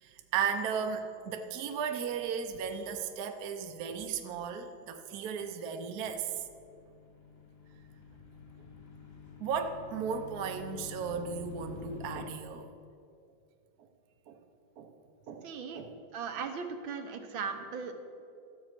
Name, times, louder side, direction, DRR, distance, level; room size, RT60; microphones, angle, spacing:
voice 1, 0.0-6.3 9.4-12.7 14.3-14.4 14.8-14.9 15.3-15.5 15.7-15.9 16.3-16.4, right 6 dB, 60° right, 5 dB, 1.1 m, -35 dB
sound 1, 5.8-12.3, left 6 dB, 35° left, 1.4 m, -48 dB
voice 2, 15.4-15.8 16.1-17.9, right 5 dB, 80° right, 5 dB, 1.7 m, -38 dB
13.0 x 7.7 x 6.0 m, 2.5 s
omnidirectional pair, 2.2 m